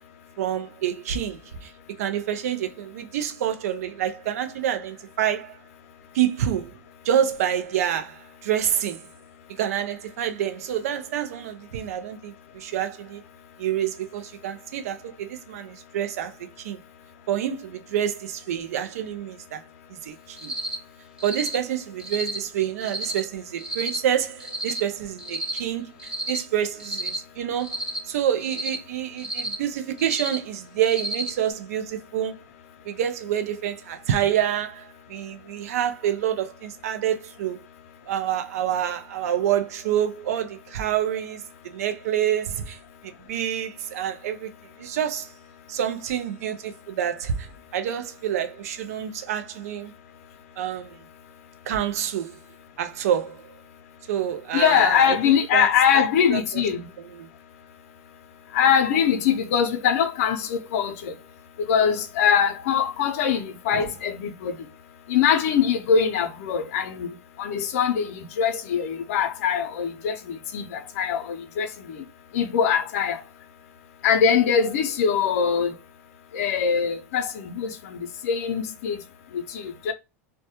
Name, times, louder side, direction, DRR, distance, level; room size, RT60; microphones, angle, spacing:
voice 1, 0.4-5.6 6.1-6.8 7.0-9.1 9.6-13.2 13.6-16.8 17.3-19.6 20.0-20.5 21.2-27.8 28.1-32.4 32.8-37.6 38.1-44.5 44.8-45.3 45.7-49.9 50.6-51.0 51.7-52.4 52.8-53.5 54.1-55.2 55.5-55.7 55.9-56.0 56.3-56.4 57.2-57.3 63.7-63.8, right 10 dB, 70° right, 0.4 m, -27 dB
Cricket, 20.4-20.8 21.2-21.6 22.0-22.4 22.8-23.2 23.6-24.0 24.4-24.8 25.2-25.6 26.0-26.4 26.8-27.2 27.6-28.0 28.4-28.8 29.2-29.5 30.0-30.4 30.8-31.3, right 1 dB, 10° right, 0.9 m, -31 dB
voice 2, 54.5-56.9 58.5-61.1 61.7-64.6 65.1-72.0 72.3-73.2 74.0-75.7 76.3-79.0 79.3-79.9, left 7 dB, 65° left, 0.5 m, -23 dB
2.2 x 2.1 x 2.8 m
hypercardioid pair, 95°, 8 cm